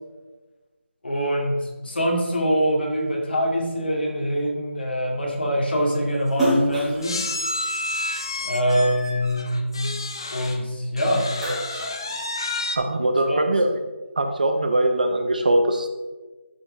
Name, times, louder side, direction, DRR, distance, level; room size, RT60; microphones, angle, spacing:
voice 1, 1.0-7.2 8.5-9.7 10.3-11.3 13.3-13.5, equal, 50° left, 0 dB, 2.1 m, -24 dB
sound 1, 5.6-5.7 5.9-6.1 7.0-10.6 11.0-12.8, left 2 dB, 20° left, 0.4 m, -30 dB
Splash splatter, 6.3-8.8 9.3-10.8 11.1-12.8, equal, ahead, 1.3 m, -29 dB
voice 2, 12.8-13.7 14.2-15.9, right 1 dB, 40° right, 6 dB, 0.7 m, -21 dB
12.5 x 4.6 x 3.8 m, 1.2 s
figure-of-eight pair, 175°, 7 cm